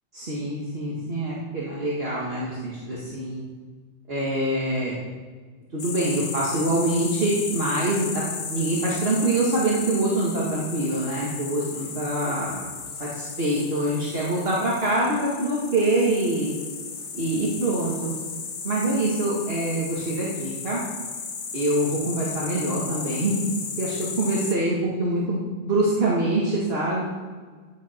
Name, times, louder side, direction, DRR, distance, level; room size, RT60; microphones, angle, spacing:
voice 1, 0.1-3.4 4.1-5.0 5.7-8.2 8.5-12.7 13.0-16.5 17.1-18.1 18.6-20.8 21.5-23.4 23.8-27.0, right 1 dB, 60° right, -6 dB, 2.0 m, -25 dB
sound 1, 5.8-24.6, left 5 dB, 85° left, 1.4 m, -35 dB
15.0 x 7.7 x 4.4 m, 1.5 s
omnidirectional pair, 1.2 m